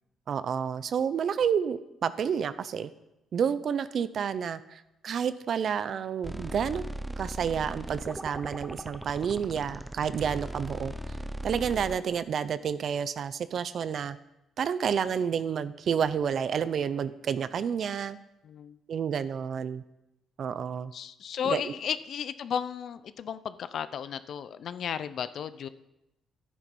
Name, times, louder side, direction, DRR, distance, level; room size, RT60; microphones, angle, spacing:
voice 1, 0.3-2.9 3.3-6.8 7.2-10.9 11.4-14.2 14.6-18.2 18.9-19.8 20.4-20.9 21.4-21.6, right 7 dB, 55° right, 15 dB, 0.6 m, -30 dB
sound 1, 6.2-12.0, right 1 dB, 5° right, 0.6 m, -38 dB
voice 2, 18.4-18.8 20.9-25.7, left 8 dB, 60° left, 14 dB, 0.6 m, -34 dB
12.0 x 9.8 x 5.4 m, 0.91 s
cardioid pair, 110°, 0 cm